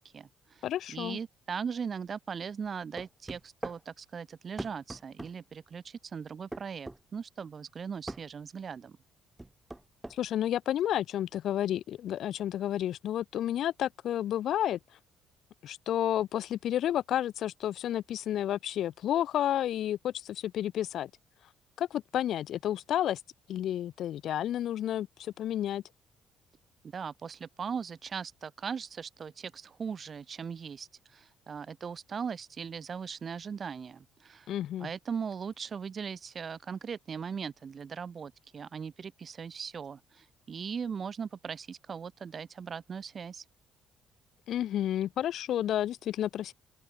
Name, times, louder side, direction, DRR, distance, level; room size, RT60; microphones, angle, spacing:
voice 1, 0.0-0.6 0.9-9.0 26.9-34.5 34.8-43.4, right 6 dB, 35° right, 0.9 m, -39 dB
voice 2, 0.6-1.2 10.1-14.8 15.6-21.1 21.8-23.2 23.5-25.8 34.5-34.9 44.5-46.5, left 11 dB, 60° left, 1.1 m, -31 dB
sound 1, 3.0-3.8 4.6-5.3 6.5-7.0 8.1-8.3 9.4-10.2, right 1 dB, 10° right, 0.4 m, -40 dB
open air
cardioid pair, 130°, 0 cm